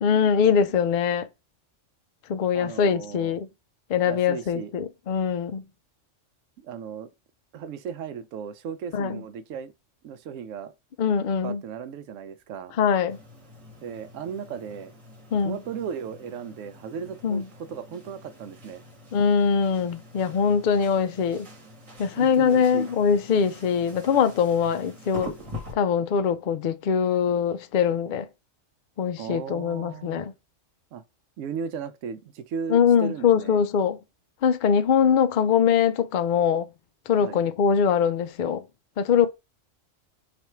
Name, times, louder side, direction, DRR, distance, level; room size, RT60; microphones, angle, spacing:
voice 1, 0.0-1.3 2.3-3.5 3.9-5.6 8.9-9.2 11.0-11.6 12.8-13.2 15.3-15.6 17.2-17.5 19.1-21.5 22.0-25.3 25.7-28.3 29.0-30.3 32.7-34.0 34.4-36.7 37.1-38.6 39.0-39.3, left 7 dB, 60° left, 0.5 m, -22 dB
voice 2, 2.5-3.3 4.0-4.7 6.6-7.1 7.5-9.7 10.0-10.7 11.4-12.8 13.8-14.9 15.4-18.8 22.2-22.9 29.2-30.3 30.9-31.0 31.4-33.6 37.2-37.4, right 7 dB, 85° right, 1.0 m, -36 dB
sound 1, 13.1-25.7, left 1 dB, 30° right, 1.0 m, -45 dB
3.4 x 2.5 x 4.3 m
omnidirectional pair, 1.3 m